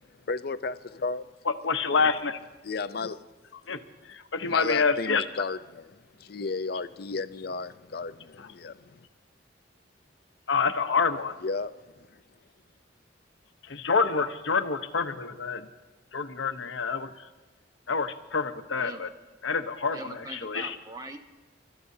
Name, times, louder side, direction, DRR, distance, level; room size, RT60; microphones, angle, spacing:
voice 1, 0.3-1.3 2.6-3.2 4.5-5.9 6.2-9.0 11.4-12.1, left 4 dB, 55° left, 0.5 m, -33 dB
voice 2, 1.5-2.4 3.7-3.8 4.1-5.3 8.4-8.5 10.5-11.3 13.6-15.7 16.1-17.3 17.9-19.1 19.4-20.8, left 5 dB, 80° left, 0.9 m, -27 dB
voice 3, 19.9-21.2, right 2 dB, 20° right, 1.0 m, -41 dB
27.5 x 13.5 x 2.7 m
head